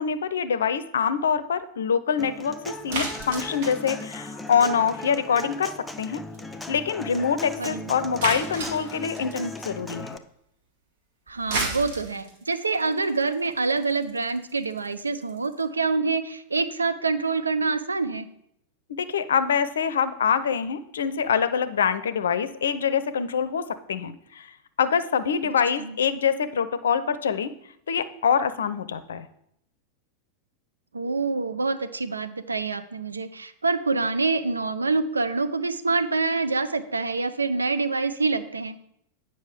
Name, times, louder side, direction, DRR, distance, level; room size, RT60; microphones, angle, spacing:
voice 1, 0.0-5.7 6.0-6.2 6.7-10.2 18.9-24.5 24.8-27.5 27.9-29.3, left 7 dB, 65° left, 14 dB, 0.5 m, -25 dB
Human voice / Acoustic guitar, 2.2-10.2, left 2 dB, 5° left, 0.5 m, -38 dB
sound 1, 2.9-5.1 5.4-5.7 6.0-6.1 6.3-6.4 6.7-6.8 7.2-7.3 8.2-9.5 11.3-15.6, right 2 dB, 55° right, 2.0 m, -33 dB
voice 2, 7.6-8.0 11.3-18.3 25.8-26.0 30.9-38.8, right 4 dB, 75° right, 10 dB, 0.6 m, -26 dB
9.2 x 5.5 x 4.9 m, 0.74 s
figure-of-eight pair, 90°, 0 cm